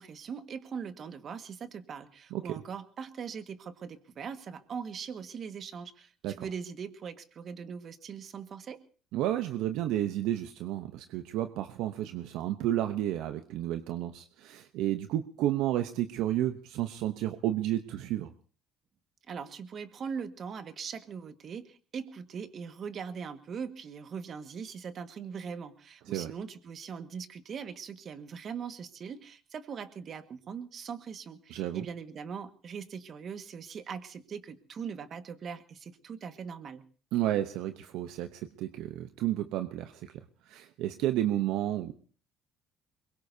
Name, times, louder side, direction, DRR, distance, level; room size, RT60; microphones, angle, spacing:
voice 1, 0.0-8.8 19.3-36.8, right 6 dB, 50° right, 9 dB, 1.7 m, -41 dB
voice 2, 9.1-18.3 26.1-26.3 31.5-31.9 37.1-41.9, right 13 dB, 75° right, 9 dB, 0.8 m, -31 dB
23.0 x 21.5 x 2.8 m, 0.43 s
supercardioid pair, 85°, 0 cm